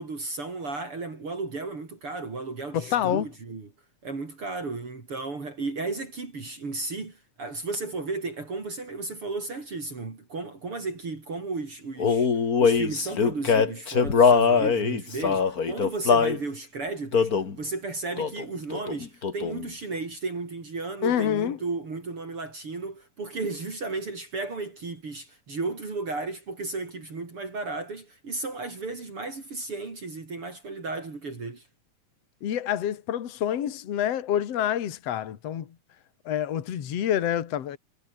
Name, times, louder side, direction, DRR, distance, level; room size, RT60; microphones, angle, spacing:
voice 1, 0.0-3.7 4.0-12.3 12.6-31.7, right 3 dB, 45° right, 5.2 m, -34 dB
voice 2, 2.7-3.3 21.0-21.6 32.4-35.7 36.3-37.8, left 10 dB, 60° left, 2.8 m, -27 dB
Male singing, 12.0-16.4 17.1-17.5 18.2-18.5 18.7-19.7, left 5 dB, 35° left, 2.0 m, -22 dB
omnidirectional pair, 3.3 m